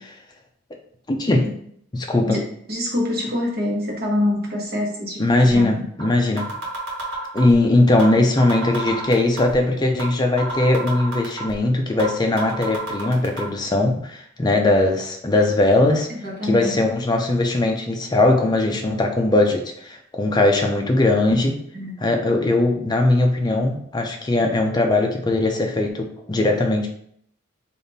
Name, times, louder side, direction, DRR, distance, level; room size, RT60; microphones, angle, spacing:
voice 1, 1.1-1.5 1.9-2.4 5.2-6.5 7.3-16.1 16.4-21.6 22.0-26.9, left 2 dB, 20° left, 2 dB, 0.4 m, -19 dB
voice 2, 2.3-5.2 5.5-5.7 16.2-16.8 21.7-22.0, left 1 dB, 45° right, -2 dB, 1.0 m, -25 dB
sound 1, 6.0-6.1 6.4-7.5 8.0-8.1 8.4-9.5 10.0-10.1 10.4-11.5 12.0-12.1 12.4-13.4, right 1 dB, 65° right, 1.1 m, -30 dB
3.5 x 2.4 x 3.9 m, 0.67 s
head